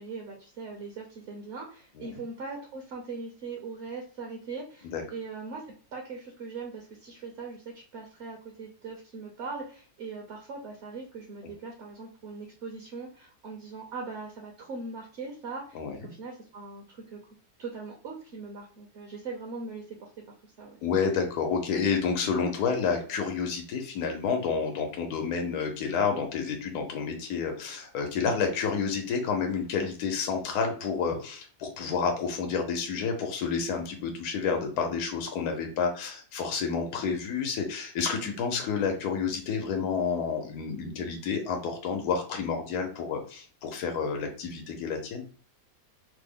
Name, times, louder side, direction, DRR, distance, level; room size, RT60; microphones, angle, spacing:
voice 1, 0.0-5.6 5.9-17.2 17.6-20.1 20.4-20.8, right 4 dB, 55° right, 0 dB, 0.9 m, -40 dB
voice 2, 20.8-45.2, left 5 dB, 80° left, 4 dB, 1.2 m, -29 dB
3.3 x 2.0 x 3.5 m, 0.43 s
omnidirectional pair, 1.7 m